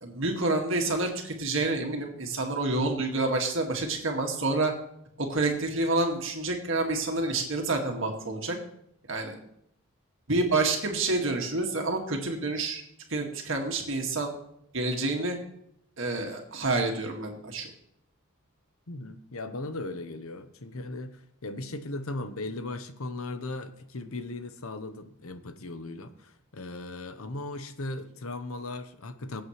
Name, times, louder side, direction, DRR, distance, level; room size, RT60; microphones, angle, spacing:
voice 1, 0.0-4.7 5.2-8.6 9.1-9.4 10.3-12.8 13.1-14.3 14.7-15.4 16.0-17.7, right 2 dB, 65° right, 2 dB, 2.1 m, -28 dB
voice 2, 18.9-29.4, left 2 dB, 85° left, 10 dB, 1.0 m, -37 dB
23.0 x 8.2 x 3.3 m, 0.74 s
head